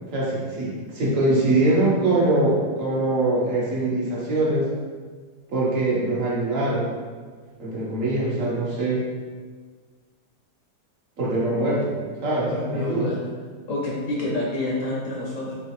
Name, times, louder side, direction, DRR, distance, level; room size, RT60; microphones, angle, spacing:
voice 1, 0.1-4.7 5.5-6.9 7.6-9.1 11.2-12.0 12.2-13.1, right 2 dB, 55° right, -6 dB, 1.1 m, -23 dB
voice 2, 12.7-13.2 13.7-15.5, left 2 dB, 60° left, -4 dB, 0.9 m, -28 dB
4.7 x 3.0 x 2.9 m, 1.5 s
omnidirectional pair, 1.8 m